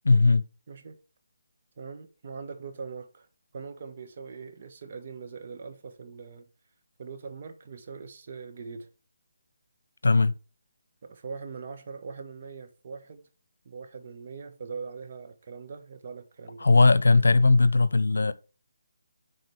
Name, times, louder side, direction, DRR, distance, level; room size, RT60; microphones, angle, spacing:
voice 1, 0.0-0.4 10.0-10.3 16.6-18.3, left 3 dB, 85° left, 0.7 m, -19 dB
voice 2, 0.7-1.0 1.8-3.3 3.5-6.5 7.0-8.9 11.0-13.3 13.6-16.7, right 5 dB, 45° right, 1.3 m, -41 dB
10.5 x 4.2 x 3.3 m
hypercardioid pair, 160°, 0 cm